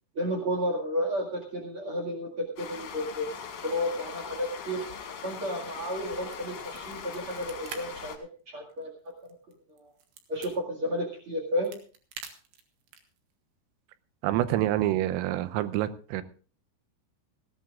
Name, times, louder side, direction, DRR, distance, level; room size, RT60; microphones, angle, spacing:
voice 1, 0.1-3.2 3.6-4.8 5.2-8.1 8.5-8.9 9.2-9.3 9.8-9.9 10.3-11.7, equal, 50° right, 2 dB, 1.6 m, -32 dB
sound 1, 2.6-8.2, left 6 dB, 60° left, 2.3 m, -41 dB
sound 2, 6.2-7.8 8.1-8.2 8.7-10.5 11.3-13.2, right 7 dB, 65° right, 3.2 m, -45 dB
voice 2, 14.2-16.2, right 14 dB, 85° right, 13 dB, 3.4 m, -27 dB
19.0 x 15.0 x 2.4 m, 0.40 s
omnidirectional pair, 5.8 m